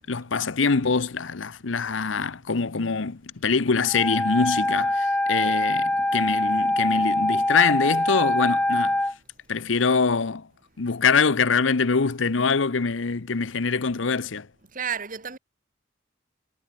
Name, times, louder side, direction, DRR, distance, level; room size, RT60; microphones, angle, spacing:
voice 1, 0.1-9.0 9.5-10.5 10.8-14.5, left 5 dB, 85° left, 0.9 m, -24 dB
Wind instrument woodwind instrument, 3.8-9.1, left 1 dB, 5° left, 0.6 m, -24 dB
voice 2, 14.7-15.4, right 7 dB, 45° right, 1.9 m, -31 dB
head